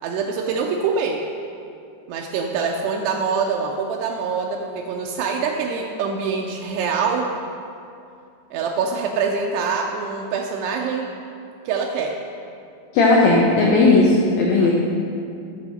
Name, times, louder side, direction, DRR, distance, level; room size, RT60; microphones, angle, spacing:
voice 1, 0.0-1.2 2.1-7.3 8.5-11.1 11.7-12.1 14.6-14.7, right 5 dB, 85° right, 1 dB, 2.4 m, -24 dB
voice 2, 12.9-14.7, left 3 dB, 90° left, -3 dB, 2.0 m, -15 dB
11.5 x 6.3 x 4.1 m, 2.5 s
omnidirectional pair, 5.3 m